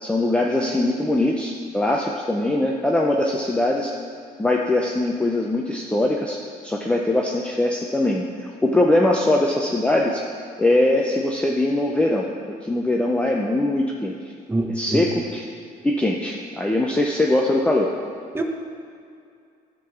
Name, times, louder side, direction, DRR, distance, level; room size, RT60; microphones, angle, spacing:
voice 1, 0.0-4.0 4.4-10.2 10.6-12.3 12.6-14.1 14.7-15.4 15.8-17.9, left 1 dB, 5° left, -1 dB, 0.6 m, -21 dB
voice 2, 14.5-15.0 18.3-18.4, right 2 dB, 15° right, 2 dB, 1.0 m, -24 dB
10.5 x 3.8 x 7.0 m, 2.3 s
cardioid pair, 110°, 17 cm